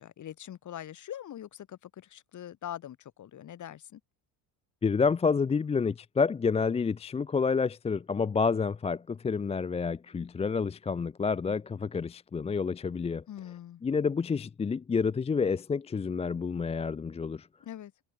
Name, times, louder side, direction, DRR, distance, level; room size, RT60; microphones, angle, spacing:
voice 1, 0.0-4.0 13.3-13.8 17.6-17.9, left 11 dB, 45° left, 7.2 m, -43 dB
voice 2, 4.8-13.2 13.8-17.5, left 5 dB, 15° left, 0.5 m, -29 dB
cardioid pair, 165°, 42 cm